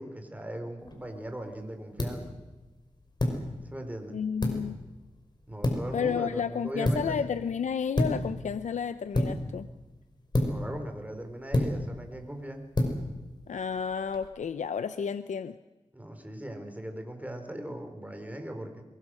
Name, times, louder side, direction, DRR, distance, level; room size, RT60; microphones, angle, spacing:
voice 1, 0.0-2.3 3.7-4.2 5.5-7.2 10.5-12.7 15.9-18.8, right 1 dB, 10° right, 5 dB, 4.1 m, -39 dB
sound 1, 0.8-14.3, left 1 dB, 35° left, 5.4 m, -33 dB
voice 2, 4.1-4.8 5.9-9.7 13.5-15.6, left 7 dB, 80° left, 12 dB, 0.7 m, -31 dB
23.0 x 22.5 x 6.4 m, 1.1 s
cardioid pair, 70°, 12 cm